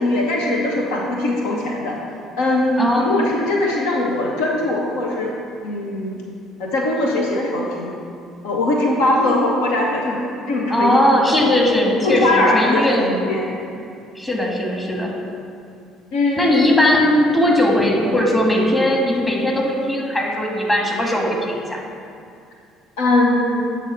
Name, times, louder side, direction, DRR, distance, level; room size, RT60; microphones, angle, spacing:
voice 1, 0.0-2.0 2.4-5.3 5.6-6.2 6.6-7.9 8.4-10.2 10.5-11.0 12.0-13.4 16.1-16.5 23.0-23.6, left 2 dB, 70° left, -1 dB, 0.7 m, -20 dB
voice 2, 2.8-3.3 10.7-13.6 14.1-15.1 16.3-21.8, left 1 dB, 15° left, -1 dB, 1.6 m, -18 dB
8.1 x 3.7 x 5.7 m, 2.4 s
figure-of-eight pair, 55°, 0 cm